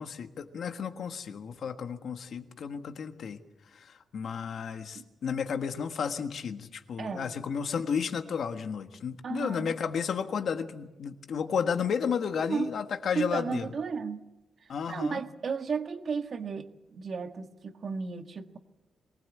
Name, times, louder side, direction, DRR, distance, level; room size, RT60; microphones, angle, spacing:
voice 1, 0.0-3.4 3.7-13.7 14.7-15.2, left 6 dB, 60° left, 7 dB, 1.5 m, -32 dB
voice 2, 7.0-7.3 9.2-9.7 12.4-12.7 13.1-14.2 14.9-18.6, right 5 dB, 45° right, 7 dB, 1.6 m, -34 dB
23.0 x 19.5 x 8.5 m, 1.0 s
wide cardioid pair, 160°, 0 cm